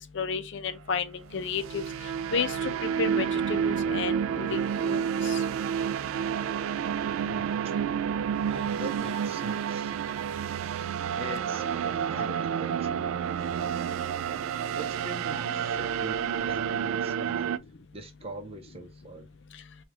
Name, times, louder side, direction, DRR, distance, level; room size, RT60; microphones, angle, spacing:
voice 1, 0.1-1.8 2.3-5.4, left 5 dB, 60° left, 0.5 m, -32 dB
sound 1, 1.3-17.6, right 8 dB, 90° right, 0.3 m, -30 dB
voice 2, 7.2-7.7 8.5-9.9 11.2-13.8 14.7-17.6 17.9-19.3, right 2 dB, 30° right, 0.7 m, -42 dB
4.7 x 2.4 x 2.9 m
head